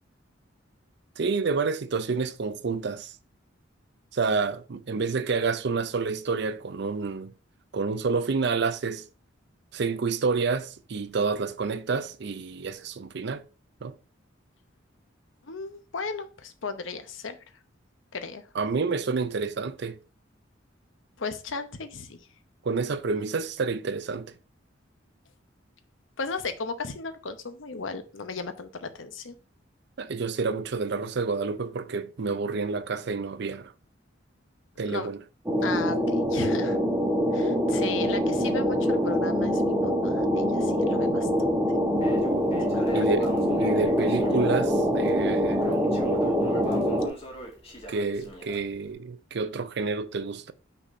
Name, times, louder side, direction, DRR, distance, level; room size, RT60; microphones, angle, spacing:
voice 1, 1.2-3.2 4.1-7.3 7.7-9.0 9.7-13.4 13.8-13.9 18.5-20.0 22.6-24.3 30.0-33.7 34.8-35.2 42.9-43.3 43.6-45.7 47.9-50.5, right 4 dB, 60° right, 0.5 m, -28 dB
voice 2, 15.5-17.4 18.1-18.4 21.2-22.2 26.2-29.4 34.8-35.1 35.6-36.8 37.3-41.3 42.7-43.1, left 4 dB, 80° left, 0.9 m, -35 dB
sound 1, 35.5-47.1, equal, 10° right, 1.1 m, -24 dB
Crackle, 42.0-48.9, equal, 30° left, 1.9 m, -42 dB
5.8 x 4.1 x 5.1 m
head